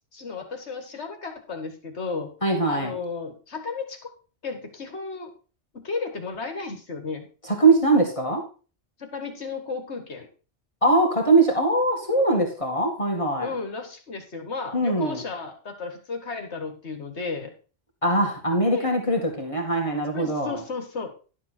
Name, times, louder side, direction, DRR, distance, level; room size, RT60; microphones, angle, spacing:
voice 1, 0.1-2.3 2.7-4.1 4.4-5.3 5.7-7.3 9.0-10.3 13.4-17.5 18.7-18.9 20.1-21.1, left 4 dB, 65° left, 5 dB, 1.9 m, -34 dB
voice 2, 2.4-3.0 7.4-8.4 10.8-13.5 14.7-15.2 18.0-20.6, right 2 dB, 25° left, 0 dB, 2.2 m, -22 dB
11.5 x 7.3 x 4.3 m, 0.37 s
omnidirectional pair, 1.2 m